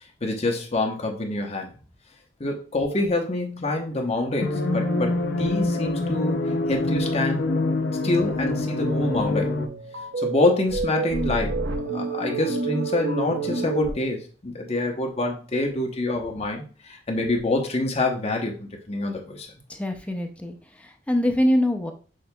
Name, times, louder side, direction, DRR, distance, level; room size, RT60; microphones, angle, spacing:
voice 1, 0.2-1.7 2.4-6.4 6.7-7.4 8.0-9.5 10.2-11.6 11.9-19.5, left 2 dB, 35° left, 1 dB, 0.8 m, -26 dB
sound 1, 4.4-9.7, left 2 dB, 65° left, 0.5 m, -25 dB
sound 2, 8.8-13.9, right 3 dB, 70° right, 0.7 m, -29 dB
voice 2, 19.7-21.9, left 1 dB, 5° left, 4 dB, 0.5 m, -24 dB
6.2 x 2.8 x 2.2 m, 0.38 s
head